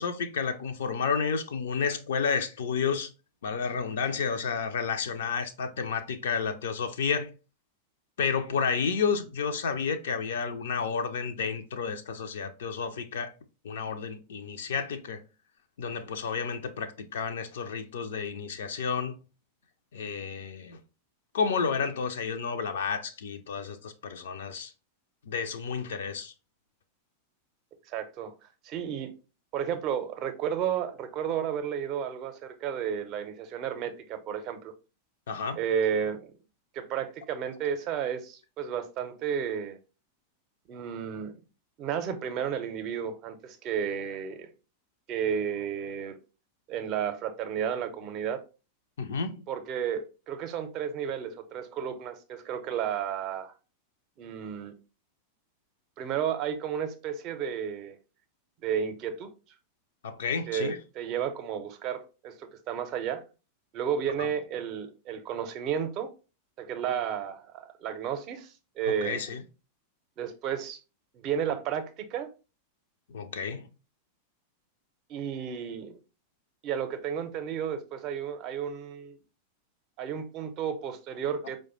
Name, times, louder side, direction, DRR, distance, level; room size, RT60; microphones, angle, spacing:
voice 1, 0.0-3.1 3.4-7.3 8.2-13.3 13.6-15.2 15.8-19.2 19.9-20.8 21.3-24.7 25.3-26.3 35.3-35.6 49.0-49.4 60.0-60.8 64.2-64.3 68.9-69.4 73.1-73.7, left 6 dB, 60° left, 0.4 m, -31 dB
voice 2, 27.9-28.3 28.6-29.1 29.5-34.7 35.6-36.3 36.7-39.8 40.7-41.4 41.8-44.5 45.1-46.2 46.7-48.4 49.5-53.5 54.2-54.7 56.0-58.0 58.6-59.3 60.5-63.2 63.7-66.1 66.6-69.2 70.2-70.8 71.1-72.3 75.1-76.0 76.6-79.2 80.0-81.6, right 8 dB, 40° right, 0.5 m, -32 dB
4.7 x 2.1 x 3.0 m
figure-of-eight pair, 90°, 0 cm